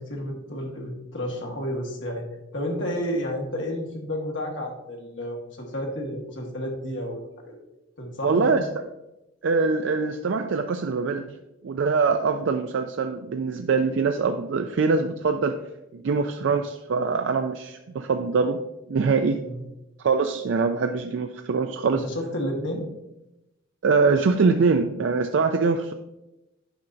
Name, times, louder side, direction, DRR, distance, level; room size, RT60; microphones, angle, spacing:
voice 1, 0.0-2.3 2.5-7.6 8.0-8.7 19.4-19.6 21.9-22.8, equal, 70° left, 0 dB, 1.5 m, -31 dB
voice 2, 8.2-8.6 9.4-11.2 11.6-15.6 15.9-18.6 18.9-19.4 20.0-22.0 23.8-25.9, right 4 dB, 70° right, 6 dB, 0.4 m, -23 dB
8.7 x 5.6 x 2.6 m, 0.93 s
head